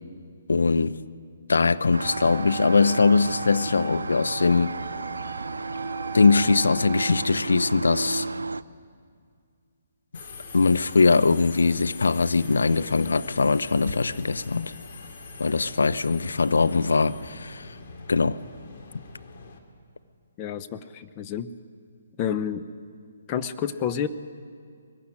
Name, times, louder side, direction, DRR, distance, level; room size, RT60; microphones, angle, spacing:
voice 1, 0.5-1.0 1.5-4.8 6.1-8.3 10.5-14.7 15.4-17.7 18.1-18.4, left 4 dB, 75° left, 0.6 m, -21 dB
sound 1, 1.9-8.6, right 3 dB, 85° right, 0.5 m, -33 dB
sound 2, 2.0-7.2, right 11 dB, 15° right, 2.6 m, -39 dB
Subway metro underground, 10.1-19.6, left 4 dB, 50° left, 2.7 m, -42 dB
voice 2, 20.4-21.5 22.2-22.6 23.3-24.1, left 9 dB, 30° left, 0.7 m, -29 dB
22.0 x 15.5 x 10.0 m
figure-of-eight pair, 140°, 0 cm